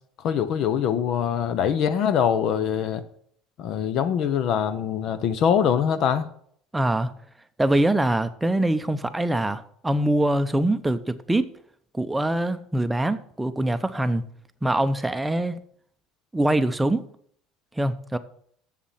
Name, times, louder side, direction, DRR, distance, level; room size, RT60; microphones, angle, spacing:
voice 1, 0.2-3.0 3.6-6.3, left 8 dB, 55° left, 0.8 m, -23 dB
voice 2, 6.7-7.1 7.6-11.5 11.9-14.2 14.6-15.6 16.3-17.0 17.8-18.2, right 1 dB, 5° right, 0.7 m, -23 dB
7.5 x 7.2 x 7.3 m
cardioid pair, 130°, 0 cm